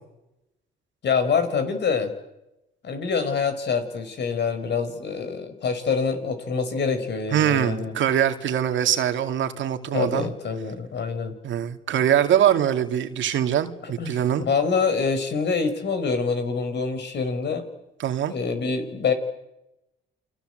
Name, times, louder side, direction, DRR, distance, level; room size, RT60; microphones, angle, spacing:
voice 1, 1.0-2.1 2.8-7.9 9.9-11.3 13.8-14.2 14.5-17.6 18.3-19.1, left 5 dB, 60° left, 8 dB, 5.1 m, -25 dB
voice 2, 7.3-10.3 11.4-14.4 18.0-18.3, right 10 dB, 75° right, 7 dB, 2.5 m, -23 dB
29.0 x 24.5 x 7.9 m, 0.93 s
cardioid pair, 90°, 20 cm